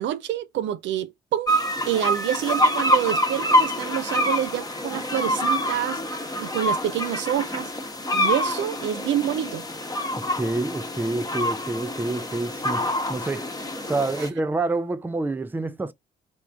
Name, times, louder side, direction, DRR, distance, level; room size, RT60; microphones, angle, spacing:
voice 1, 0.0-1.5 1.9-6.0 6.4-7.7 8.1-9.6 14.2-14.3, right 11 dB, 65° right, 0.5 m, -27 dB
sound 1, 1.5-14.3, equal, 20° left, 1.1 m, -26 dB
voice 2, 10.2-13.5 13.9-15.9, right 2 dB, 10° right, 0.5 m, -28 dB
3.5 x 2.5 x 4.4 m
hypercardioid pair, 45°, 21 cm